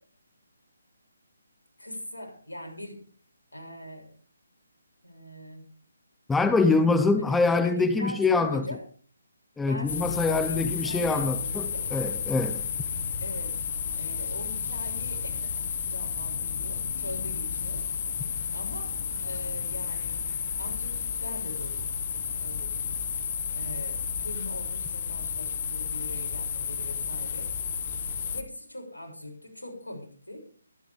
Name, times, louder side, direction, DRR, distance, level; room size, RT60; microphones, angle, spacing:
voice 1, 1.8-3.1 3.5-4.1 5.0-5.7 6.6-6.8 7.2-8.8 9.6-11.9 13.2-13.6 14.0-17.8 18.5-18.9 19.2-20.2 20.6-21.9 22.4-23.0 23.5-27.5 28.1-30.5, left 1 dB, 80° left, 6.8 m, -41 dB
voice 2, 6.3-8.6 9.6-12.7, left 3 dB, 5° left, 0.8 m, -24 dB
sound 1, 9.9-28.4, left 6 dB, 40° left, 1.8 m, -32 dB
23.5 x 10.0 x 3.6 m
figure-of-eight pair, 145°, 0 cm